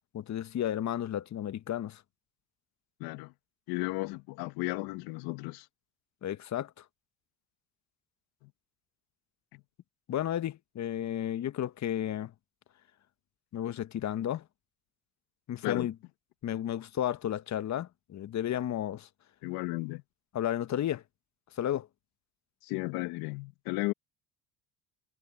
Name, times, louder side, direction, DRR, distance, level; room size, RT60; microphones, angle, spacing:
voice 1, 0.1-2.0 6.2-6.8 10.1-12.3 13.5-14.4 15.5-15.9 16.4-19.1 20.3-21.0 21.6-21.9, left 11 dB, 45° left, 1.2 m, -33 dB
voice 2, 3.0-3.3 3.7-5.7 8.4-8.5 9.5-9.6 15.6-15.9 19.4-20.0 22.6-23.9, left 22 dB, 75° left, 1.4 m, -34 dB
supercardioid pair, 70°, 37 cm